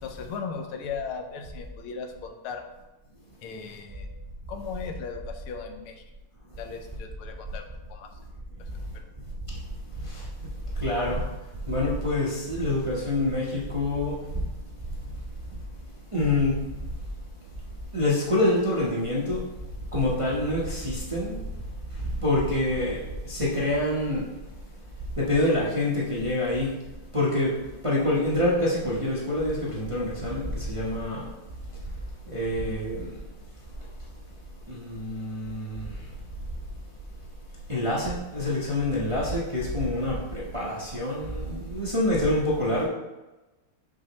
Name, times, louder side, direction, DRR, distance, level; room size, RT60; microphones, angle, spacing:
voice 1, 0.0-2.6 3.4-4.1 4.5-6.0 6.6-7.6 7.9-8.1 8.9-9.1, left 5 dB, 90° left, 5 dB, 1.7 m, -37 dB
voice 2, 10.8-11.3 11.7-14.2 16.1-16.6 17.9-19.4 19.9-21.4 22.2-24.3 25.2-26.7 27.1-31.3 32.3-33.1 34.7-35.9 37.7-42.9, left 1 dB, 25° right, -6 dB, 0.6 m, -26 dB
6.3 x 6.2 x 3.1 m, 1.1 s
omnidirectional pair, 2.3 m